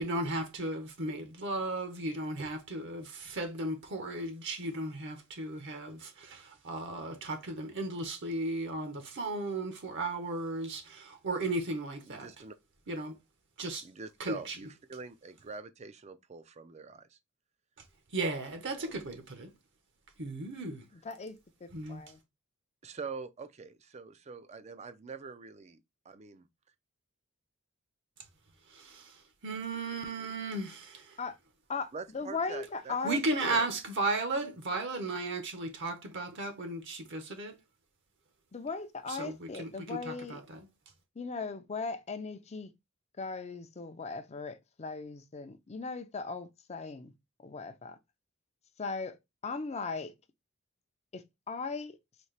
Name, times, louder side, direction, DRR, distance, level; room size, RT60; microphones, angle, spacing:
voice 1, 0.0-12.3 12.9-13.2 13.6-13.9 14.2-14.6 17.8-19.5 20.2-20.9 21.7-22.0 28.7-31.2 33.0-37.6 39.1-40.7, right 2 dB, 60° right, 0.9 m, -35 dB
voice 2, 12.1-12.6 13.8-17.2 18.7-18.9 22.8-25.8 26.1-26.5 31.9-33.0, right 4 dB, 30° right, 0.4 m, -44 dB
voice 3, 21.0-22.2 31.2-31.4 31.7-33.6 38.5-40.4 41.2-42.7 43.2-47.1 47.4-48.0 48.8-49.2 49.4-50.1 51.1-52.0, left 4 dB, 30° left, 0.5 m, -38 dB
4.2 x 2.8 x 3.2 m
head